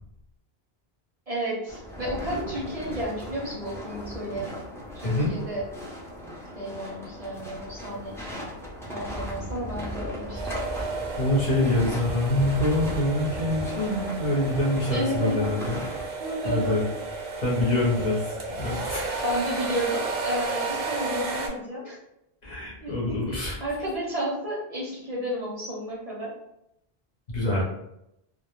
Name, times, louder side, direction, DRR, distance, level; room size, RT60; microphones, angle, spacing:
voice 1, 1.3-4.5 4.9-5.6 6.5-8.2 8.9-10.4 14.9-15.4 16.2-16.8 19.2-22.0 22.8-26.3, equal, 40° right, -6 dB, 0.7 m, -32 dB
sound 1, 1.7-16.0, equal, 5° left, 0.4 m, -37 dB
sound 2, 10.3-21.5, right 3 dB, 80° right, 0.8 m, -33 dB
voice 2, 11.2-15.8 16.4-16.8 17.4-19.2 22.4-23.6 27.3-27.6, left 1 dB, 45° left, -5 dB, 0.8 m, -25 dB
2.1 x 2.0 x 2.9 m, 0.81 s
omnidirectional pair, 1.0 m